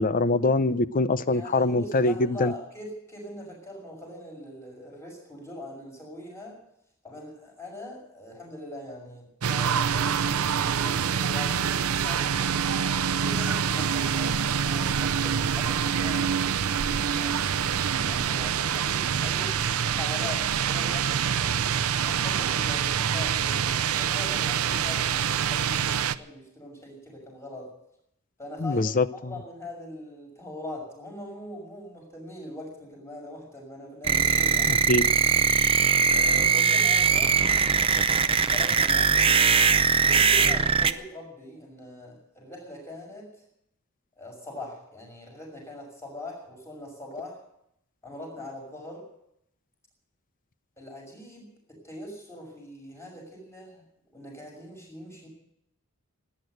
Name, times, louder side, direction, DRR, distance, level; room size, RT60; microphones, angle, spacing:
voice 1, 0.0-2.5 28.6-29.3 34.7-35.0, left 2 dB, 40° left, 15 dB, 0.6 m, -24 dB
voice 2, 1.3-6.6 7.0-12.5 13.1-21.5 22.0-27.7 28.4-28.8 29.3-34.9 36.1-37.4 37.7-39.7 40.0-43.3 44.2-47.4 48.0-49.1 50.8-53.8 54.1-55.3, left 1 dB, 10° left, -1 dB, 6.2 m, -42 dB
sound 1, 9.4-26.2, right 7 dB, 75° right, 0.6 m, -26 dB
sound 2, 34.0-40.9, right 6 dB, 25° right, 0.6 m, -21 dB
17.5 x 10.0 x 7.9 m, 0.74 s
head